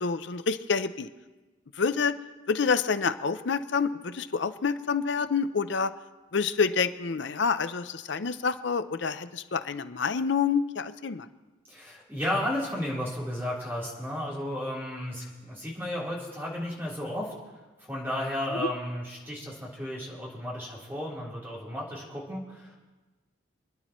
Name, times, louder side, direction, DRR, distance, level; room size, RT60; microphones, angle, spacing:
voice 1, 0.0-1.1 1.8-2.1 2.5-5.9 6.3-11.3 18.6-18.7, left 5 dB, 60° left, 11 dB, 0.6 m, -27 dB
voice 2, 11.7-17.3 17.9-22.8, left 1 dB, 10° right, -6 dB, 3.5 m, -33 dB
27.5 x 10.5 x 3.1 m, 1.2 s
head